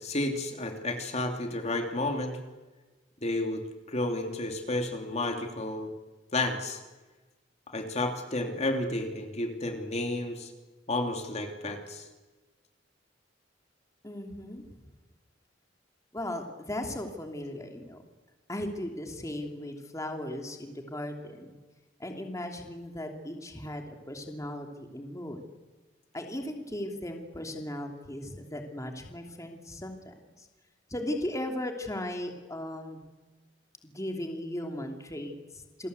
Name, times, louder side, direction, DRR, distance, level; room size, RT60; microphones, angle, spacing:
voice 1, 0.0-2.4 3.2-5.9 6.3-6.8 7.7-10.5 10.9-12.1, left 2 dB, 35° left, 4 dB, 2.9 m, -31 dB
voice 2, 14.0-15.0 16.1-18.0 18.5-21.6 22.0-25.4 26.1-30.5 30.9-33.0 33.8-35.9, left 1 dB, 15° left, 3 dB, 3.0 m, -37 dB
29.0 x 21.0 x 8.2 m, 1.2 s
head